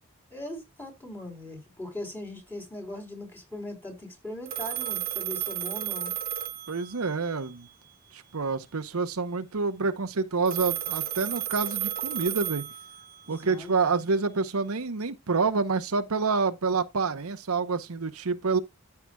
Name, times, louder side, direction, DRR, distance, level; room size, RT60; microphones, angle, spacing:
voice 1, 0.3-6.1 13.3-13.7, left 1 dB, 10° left, 3.5 m, -39 dB
Telephone, 4.5-7.3 10.5-13.3, right 12 dB, 45° right, 0.8 m, -33 dB
voice 2, 6.7-7.7 8.1-12.7 13.3-18.6, right 4 dB, 80° right, 0.8 m, -28 dB
14.0 x 5.8 x 2.3 m
head